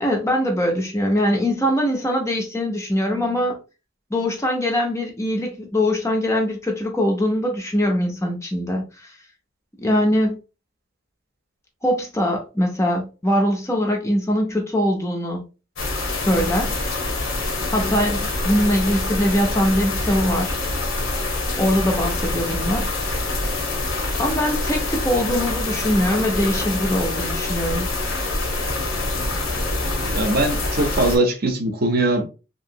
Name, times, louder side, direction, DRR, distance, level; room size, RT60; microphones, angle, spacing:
voice 1, 0.0-3.6 4.1-9.1 9.8-10.4 11.8-15.4 16.2-16.7 17.7-20.6 21.6-22.9 24.2-27.9, equal, 15° left, 0.5 m, -22 dB
sound 1, 15.8-31.2, left 2 dB, 85° left, 0.9 m, -25 dB
voice 2, 30.1-32.2, right 2 dB, 45° right, 0.6 m, -21 dB
2.8 x 2.7 x 2.7 m
head